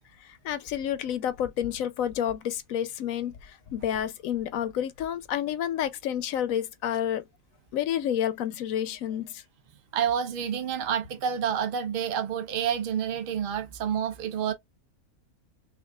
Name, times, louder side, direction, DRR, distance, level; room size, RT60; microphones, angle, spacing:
voice 1, 0.2-7.2 7.7-9.4 14.4-14.5, left 10 dB, 80° left, 1.0 m, -30 dB
voice 2, 9.9-14.5, right 8 dB, 45° right, 0.8 m, -29 dB
5.8 x 2.5 x 2.3 m
omnidirectional pair, 1.5 m